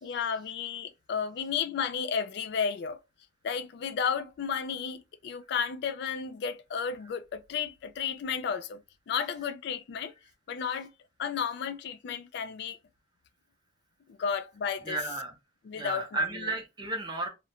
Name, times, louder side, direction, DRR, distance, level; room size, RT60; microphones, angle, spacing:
voice 1, 0.0-3.0 3.4-8.8 9.1-10.1 10.5-10.9 11.2-12.8 14.1-15.0 15.6-16.5, left 6 dB, 60° left, 0.3 m, -33 dB
voice 2, 14.8-15.3 15.8-17.3, right 2 dB, 25° right, 0.6 m, -33 dB
2.4 x 2.1 x 2.8 m
head